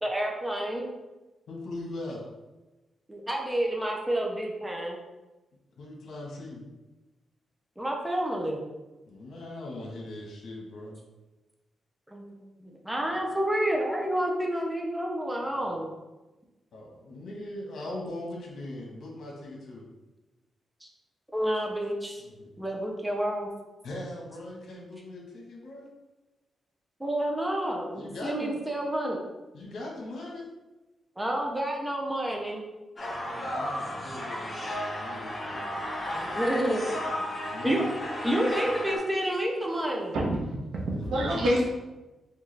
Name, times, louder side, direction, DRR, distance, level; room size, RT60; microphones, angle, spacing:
voice 1, 0.0-0.8 3.1-5.0 7.8-8.6 12.1-15.9 20.8-20.9 21.3-22.2 22.6-23.5 27.0-29.2 31.2-32.6 36.1-36.8 37.2-37.3 37.6-37.8 38.2-40.1, right 1 dB, 5° right, -1 dB, 0.5 m, -29 dB
voice 2, 1.5-2.2 5.8-6.6 9.1-11.0 13.1-13.2 15.5-15.7 16.7-19.8 22.2-22.5 23.8-25.9 27.9-28.6 29.5-30.5 33.0-35.9 37.3-37.7 41.0-41.3, left 1 dB, 70° left, -2 dB, 1.1 m, -40 dB
sound 1, 33.0-39.0, left 1 dB, 25° left, 0.8 m, -33 dB
voice 3, 40.1-41.7, equal, 80° right, -2 dB, 0.8 m, -27 dB
4.5 x 2.3 x 3.2 m, 1.1 s
wide cardioid pair, 155°, 0 cm